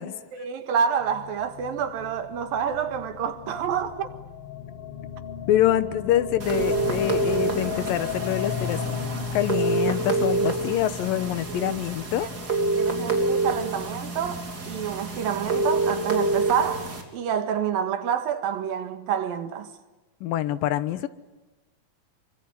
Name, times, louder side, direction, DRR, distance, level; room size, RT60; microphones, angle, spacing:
voice 1, 0.3-4.1 11.5-11.8 12.2-12.3 12.8-19.7, right 8 dB, 85° right, 3.5 m, -28 dB
sound 1, 1.0-13.3, left 8 dB, 50° left, 2.0 m, -36 dB
voice 2, 5.5-8.8 9.3-12.3 20.2-21.1, left 12 dB, 80° left, 2.8 m, -25 dB
sound 2, 6.4-17.0, right 3 dB, 25° right, 3.8 m, -27 dB
25.5 x 24.5 x 9.5 m
omnidirectional pair, 4.0 m